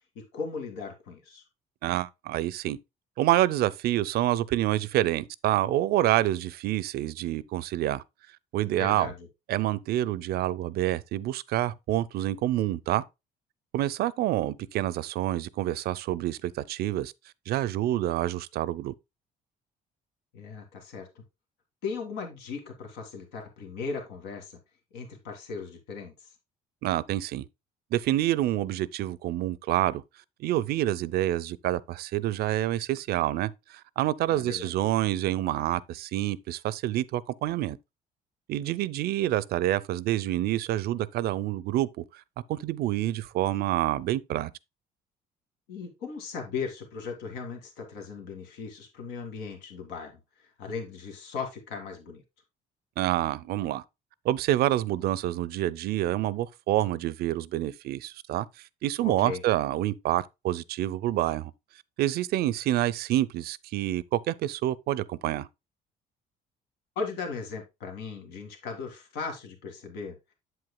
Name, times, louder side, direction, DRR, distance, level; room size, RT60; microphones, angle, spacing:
voice 1, 0.3-1.5 8.8-9.3 20.3-21.2 21.8-24.6 24.9-26.3 34.3-34.7 45.7-52.2 59.0-59.4 67.0-70.3, left 5 dB, 90° left, 2.0 m, -37 dB
voice 2, 1.8-2.8 3.2-8.0 8.5-9.1 9.5-13.0 13.7-17.1 17.5-18.9 26.8-27.5 27.9-30.0 30.4-37.8 38.5-42.2 42.5-44.5 53.0-53.8 54.2-58.5 58.8-61.5 62.0-65.5, right 14 dB, 70° right, 0.5 m, -27 dB
8.1 x 7.8 x 2.2 m
cardioid pair, 110°, 17 cm